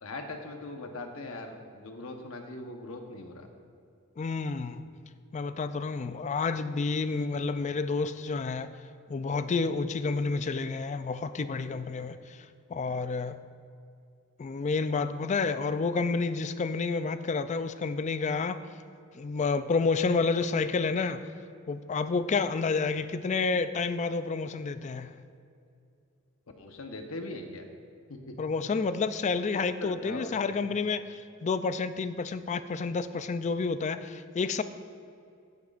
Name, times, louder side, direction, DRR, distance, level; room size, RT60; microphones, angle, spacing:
voice 1, 0.0-3.5 22.9-23.0 26.6-27.7 28.1-28.3 29.8-30.6, left 2 dB, 70° left, 4 dB, 1.1 m, -40 dB
voice 2, 4.2-4.9 5.3-8.7 9.1-12.4 12.7-13.3 14.4-18.6 19.2-21.3 21.7-25.1 28.4-34.6, left 4 dB, 35° left, 12 dB, 0.4 m, -29 dB
16.0 x 9.4 x 2.5 m, 2.5 s
head